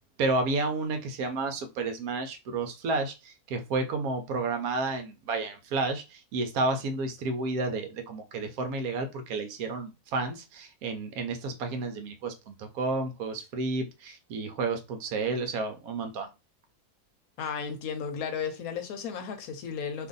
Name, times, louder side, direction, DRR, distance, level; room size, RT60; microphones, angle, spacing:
voice 1, 0.2-16.3, right 3 dB, 70° right, 1.0 m, -31 dB
voice 2, 17.4-20.1, left 6 dB, 70° left, 1.0 m, -34 dB
2.6 x 2.5 x 3.7 m
omnidirectional pair, 1.7 m